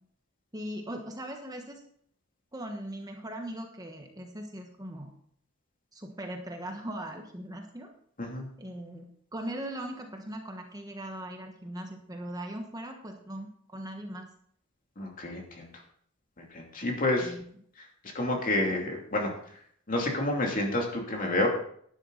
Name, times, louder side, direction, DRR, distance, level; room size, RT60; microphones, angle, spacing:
voice 1, 0.5-1.8 2.5-5.1 5.9-7.9 8.6-14.3 17.2-17.4, right 1 dB, 20° right, 3 dB, 1.2 m, -39 dB
voice 2, 15.0-15.7 16.4-17.3 18.1-19.3 19.9-21.5, left 1 dB, 40° left, 0 dB, 2.7 m, -29 dB
11.5 x 10.0 x 4.0 m, 0.63 s
head